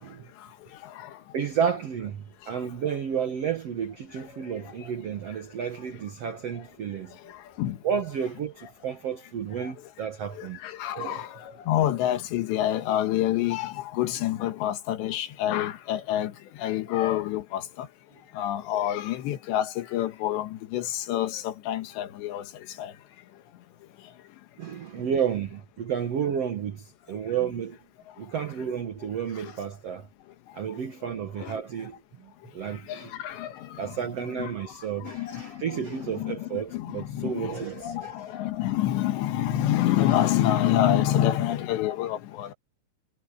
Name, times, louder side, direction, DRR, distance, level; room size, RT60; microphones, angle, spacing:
voice 1, 1.3-7.2 7.8-10.6 10.9-11.2 24.6-27.8 28.2-30.1 30.5-33.1 33.8-38.2, right 8 dB, 85° right, 1.3 m, -31 dB
voice 2, 10.4-11.3 11.7-16.3 16.6-17.9 18.4-22.4 22.8-22.9 31.4-31.5 32.9-33.5 34.4-34.5 35.0-37.5 37.8-42.5, left 12 dB, 90° left, 3.7 m, -27 dB
omnidirectional pair, 4.9 m